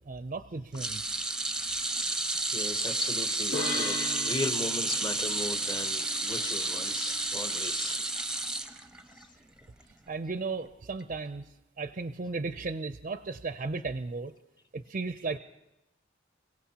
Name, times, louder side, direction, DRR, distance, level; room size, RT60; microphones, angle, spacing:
voice 1, 0.1-1.2 10.1-11.4 11.8-14.3 14.7-15.4, right 3 dB, 40° right, 10 dB, 0.5 m, -35 dB
sound 1, 0.8-9.2 9.6-9.8 11.0-11.1, right 2 dB, 5° right, 0.7 m, -31 dB
voice 2, 2.5-8.0, left 2 dB, 25° left, 8 dB, 0.9 m, -37 dB
sound 2, 3.5-7.0, left 2 dB, 90° left, 1.9 m, -38 dB
29.0 x 17.0 x 2.9 m, 0.92 s
head